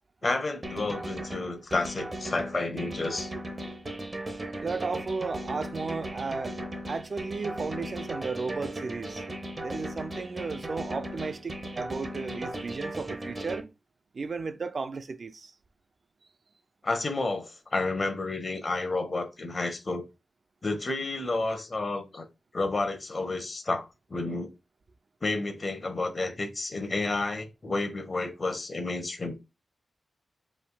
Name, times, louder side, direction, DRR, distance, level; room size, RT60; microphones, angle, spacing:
voice 1, 0.2-3.3 16.8-20.0 20.6-22.2 22.5-23.8 24.1-24.5 25.2-29.4, left 3 dB, 35° left, 1.1 m, -30 dB
sound 1, 0.6-13.6, right 1 dB, 25° right, 0.9 m, -37 dB
voice 2, 4.6-6.6 6.9-9.2 9.6-13.7 14.1-15.5, right 4 dB, 45° right, 0.4 m, -34 dB
5.3 x 3.4 x 2.3 m
wide cardioid pair, 115°, 0 cm